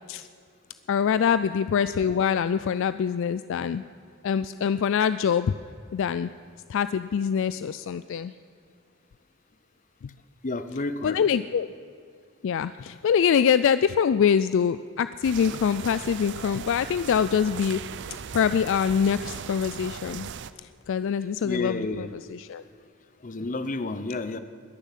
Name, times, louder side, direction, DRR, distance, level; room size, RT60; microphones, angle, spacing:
voice 1, 0.9-3.8 4.2-5.5 5.9-6.3 6.7-8.3 11.0-11.7 12.4-17.8 18.3-20.3 20.9-22.6, left 7 dB, 60° left, 14 dB, 0.3 m, -24 dB
voice 2, 10.4-11.2 21.4-22.1 23.2-24.4, left 2 dB, 35° left, 12 dB, 0.7 m, -30 dB
sound 1, 15.2-20.5, right 7 dB, 55° right, 0.5 m, -38 dB
21.0 x 7.2 x 7.4 m, 2.3 s
head